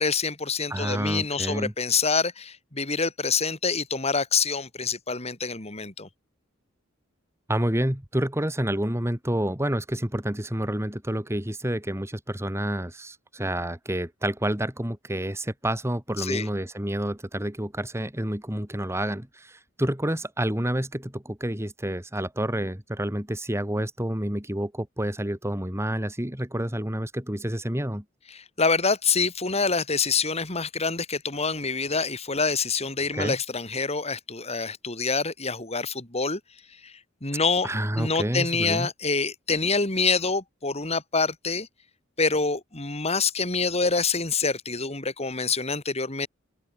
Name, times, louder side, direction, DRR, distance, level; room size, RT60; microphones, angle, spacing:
voice 1, 0.0-6.1 16.2-16.5 28.3-36.4 36.8-36.9 37.2-37.7 38.0-41.7 42.2-46.3, left 4 dB, 30° left, 3.7 m, -26 dB
voice 2, 0.7-1.7 7.5-28.0 33.1-33.4 37.6-38.9, right 1 dB, 15° right, 2.6 m, -29 dB
open air
head